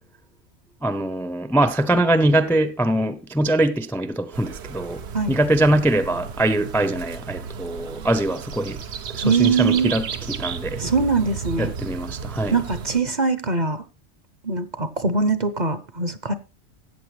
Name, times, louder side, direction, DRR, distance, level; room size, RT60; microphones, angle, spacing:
voice 1, 0.8-8.8 9.1-10.8 11.6-12.6, right 1 dB, ahead, 0.5 m, -22 dB
sound 1, 4.3-13.0, right 6 dB, 70° right, 1.1 m, -33 dB
voice 2, 9.2-9.9 10.8-11.7 12.5-13.8 14.4-16.3, right 4 dB, 45° right, 0.8 m, -22 dB
14.5 x 8.7 x 3.2 m
omnidirectional pair, 1.2 m